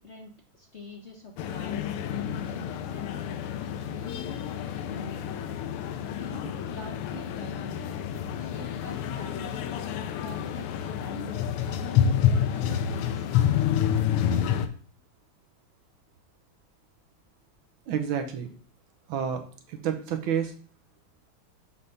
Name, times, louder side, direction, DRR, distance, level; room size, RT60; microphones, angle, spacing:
voice 1, 0.0-1.8 2.4-3.2 3.6-4.5 4.8-5.5 6.1-7.9 8.4-11.3 11.7-13.7, left 2 dB, 65° left, 0 dB, 0.6 m, -44 dB
sound 1, 1.4-14.7, left 9 dB, 90° left, 1.6 m, -28 dB
voice 2, 17.9-18.5 19.1-19.4 19.7-20.5, right 8 dB, 70° right, 7 dB, 1.5 m, -29 dB
6.7 x 3.3 x 5.5 m, 0.44 s
omnidirectional pair, 2.4 m